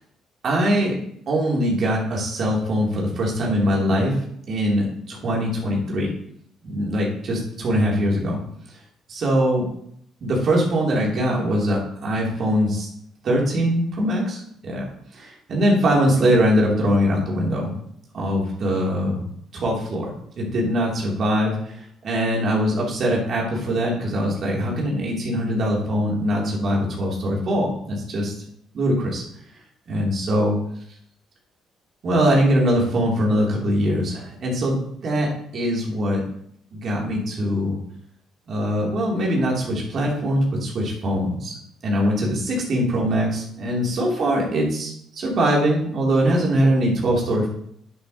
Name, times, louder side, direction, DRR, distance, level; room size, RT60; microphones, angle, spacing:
voice 1, 0.4-0.9 1.3-4.1 4.5-6.1 6.6-8.4 9.1-9.6 10.2-12.9 13.2-14.9 15.1-17.7 18.1-19.3 19.5-21.8 22.0-28.3 28.7-29.2 29.9-30.6 32.0-36.2 36.7-37.8 38.5-41.5 41.8-47.5, equal, 45° right, -3 dB, 3.4 m, -22 dB
12.0 x 8.0 x 3.1 m, 0.70 s
figure-of-eight pair, 45°, 0 cm